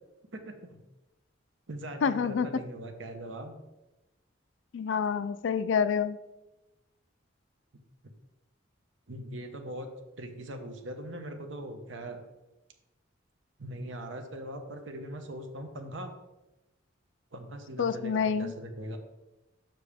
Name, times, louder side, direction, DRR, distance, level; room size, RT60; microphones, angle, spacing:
voice 1, 0.3-0.8 1.7-3.6 9.1-9.9 10.2-12.2 13.6-16.1 17.3-19.0, right 1 dB, 70° right, 6 dB, 0.9 m, -40 dB
voice 2, 2.0-2.5 4.7-6.2 17.8-18.5, left 6 dB, 70° left, 14 dB, 0.4 m, -27 dB
6.9 x 5.9 x 3.5 m, 1.0 s
head